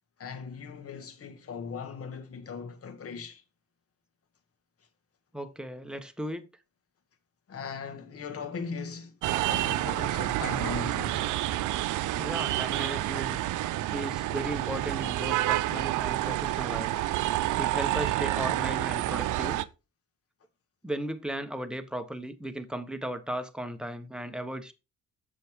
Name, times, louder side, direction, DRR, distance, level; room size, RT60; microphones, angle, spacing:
voice 1, 0.2-3.4 7.5-9.1 9.5-11.3, left 5 dB, 50° left, 1.6 m, -39 dB
voice 2, 5.3-6.5 12.2-13.4 13.9-16.9 17.6-19.6 20.8-24.7, right 1 dB, 5° right, 1.1 m, -36 dB
sound 1, 9.2-19.6, right 15 dB, 80° right, 0.6 m, -29 dB
7.5 x 7.0 x 3.6 m
cardioid pair, 90°, 30 cm